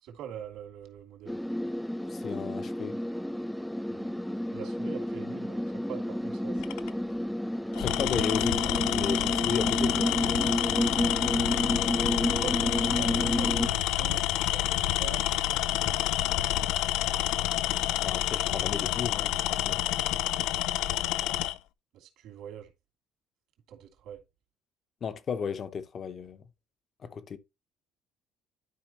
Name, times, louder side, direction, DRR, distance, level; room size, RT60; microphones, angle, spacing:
voice 1, 0.0-1.4 3.9-4.2 4.5-7.3 12.4-16.0 21.9-22.7 23.7-24.2, right 8 dB, 70° right, 2.8 m, -44 dB
sound 1, 1.3-13.7, equal, ahead, 0.4 m, -30 dB
voice 2, 2.1-3.0 7.8-10.5 18.0-19.8 25.0-26.4 27.0-27.4, left 6 dB, 35° left, 0.9 m, -34 dB
Tools, 6.6-6.9 7.7-21.6, left 14 dB, 85° left, 0.5 m, -28 dB
12.0 x 5.0 x 3.0 m
cardioid pair, 155°, 0 cm